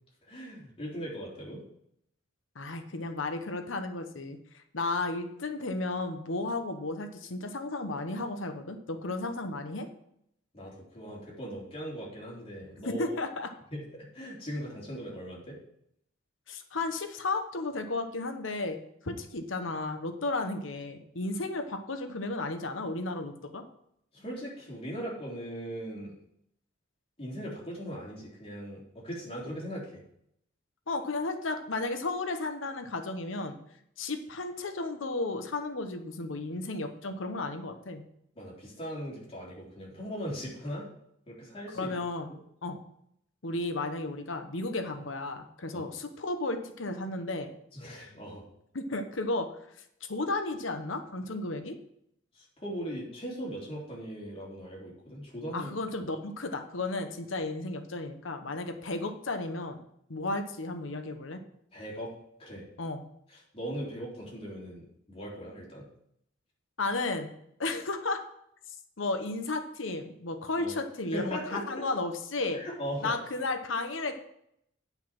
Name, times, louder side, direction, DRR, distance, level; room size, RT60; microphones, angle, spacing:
voice 1, 0.3-1.6 10.5-13.1 13.7-15.6 24.1-26.2 27.2-30.0 38.4-40.8 41.3-42.0 42.3-42.4 45.7-45.8 47.7-48.5 52.3-55.7 61.7-62.1 62.4-62.7 63.3-65.8 70.6-70.7 71.1-71.6 72.5-73.2, equal, 30° left, -4 dB, 3.5 m, -39 dB
voice 2, 2.5-9.9 12.8-13.5 16.5-23.6 30.9-33.6 34.0-38.0 41.7-42.3 42.6-42.8 43.4-47.5 48.7-49.5 50.1-51.7 55.5-59.8 60.1-61.4 62.8-63.0 66.8-67.3 67.6-68.2 69.0-72.6 73.0-74.2, left 2 dB, 80° left, 7 dB, 1.1 m, -33 dB
9.4 x 5.6 x 6.0 m, 0.73 s
head